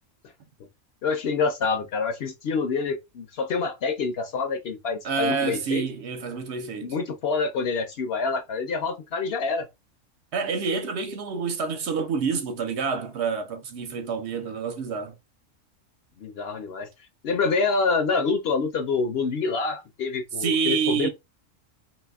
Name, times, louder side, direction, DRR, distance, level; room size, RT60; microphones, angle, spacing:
voice 1, 1.0-5.8 6.8-9.7 16.2-16.9 17.2-21.1, left 4 dB, 60° left, 0.7 m, -26 dB
voice 2, 5.0-6.9 10.3-15.1 20.4-21.1, right 5 dB, 60° right, 0.9 m, -27 dB
4.1 x 2.6 x 2.3 m
omnidirectional pair, 1.4 m